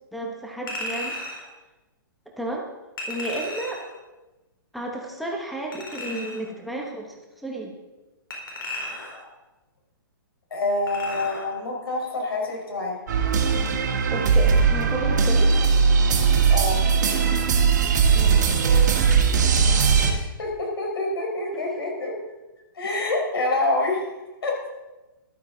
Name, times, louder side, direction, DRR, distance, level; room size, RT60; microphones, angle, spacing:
voice 1, 0.1-1.2 2.4-2.7 3.1-3.8 4.7-7.7 14.1-15.6 18.1-18.6, right 1 dB, ahead, -2 dB, 1.0 m, -32 dB
Chink clink, 0.7-1.5 3.0-3.9 5.7-6.5 8.3-9.3 10.9-11.5 11.9-12.0, left 1 dB, 65° left, 4.0 m, -34 dB
voice 2, 10.5-13.0 16.5-16.8 20.0-22.1 22.7-24.0 24.4-24.5, left 2 dB, 90° left, 0 dB, 4.6 m, -26 dB
sound 1, 13.1-20.1, right 5 dB, 50° right, 1.8 m, -19 dB
13.5 x 11.5 x 3.9 m, 1.1 s
hypercardioid pair, 180°, 12 cm